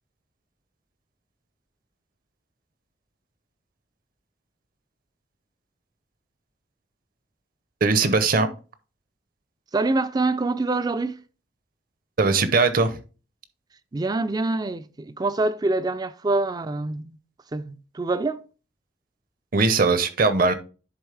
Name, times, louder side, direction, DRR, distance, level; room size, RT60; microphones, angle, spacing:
voice 1, 7.8-8.5 12.2-13.0 19.5-20.5, right 4 dB, 50° right, 0.8 m, -20 dB
voice 2, 9.7-11.2 13.9-17.2 17.5-18.4, right 2 dB, 20° right, 0.4 m, -25 dB
10.5 x 4.0 x 3.4 m
head